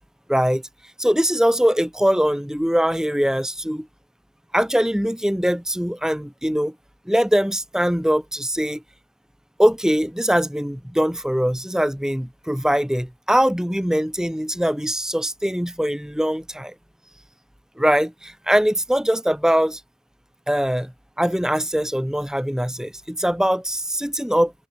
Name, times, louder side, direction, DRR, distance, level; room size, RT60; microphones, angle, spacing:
voice 1, 0.3-0.6 1.0-3.9 4.5-6.7 7.1-8.8 9.6-16.7 17.8-19.8 20.5-20.9 21.2-24.5, equal, 5° right, 0.9 m, -22 dB
head